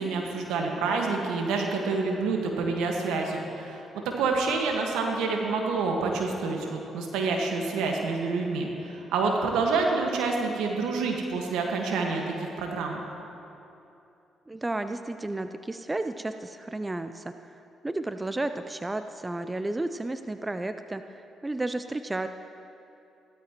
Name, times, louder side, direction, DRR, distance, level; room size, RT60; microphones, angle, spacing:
voice 1, 0.0-13.0, right 4 dB, 80° right, 1 dB, 1.5 m, -28 dB
voice 2, 14.5-17.6 17.8-22.3, right 2 dB, 20° right, 9 dB, 0.5 m, -32 dB
15.5 x 13.0 x 3.0 m, 2.8 s
hypercardioid pair, 50°, 0 cm